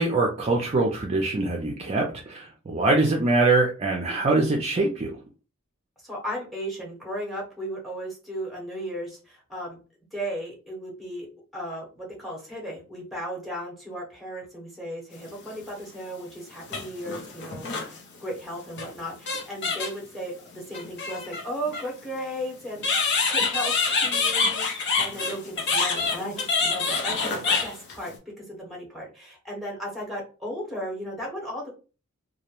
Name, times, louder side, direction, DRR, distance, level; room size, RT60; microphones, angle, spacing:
voice 1, 0.0-5.2, right 2 dB, 30° right, 0 dB, 0.4 m, -23 dB
voice 2, 6.0-9.8 10.1-11.3 11.5-22.9 23.3-27.2 27.6-31.7, equal, ahead, -2 dB, 0.9 m, -35 dB
sound 1, 15.5-15.6 16.6-18.0 18.8-18.9 19.3-20.0 20.7-21.8 22.8-28.1, left 4 dB, 55° left, 0.7 m, -26 dB
2.2 x 2.0 x 2.9 m, 0.34 s
head